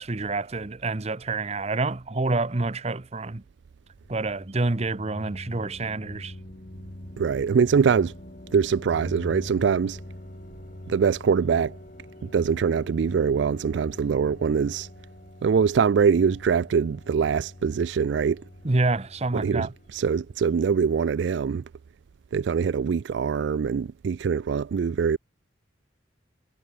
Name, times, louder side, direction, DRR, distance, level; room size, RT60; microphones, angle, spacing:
voice 1, 0.0-3.4 4.1-6.3 18.6-19.7, right 3 dB, 35° right, 0.9 m, -27 dB
sound 1, 3.9-20.6, left 1 dB, 45° left, 2.1 m, -44 dB
voice 2, 7.2-8.1 8.5-10.0 10.9-11.8 12.2-14.9 15.4-18.4 19.3-21.6 22.3-25.2, right 6 dB, 70° right, 0.4 m, -23 dB
head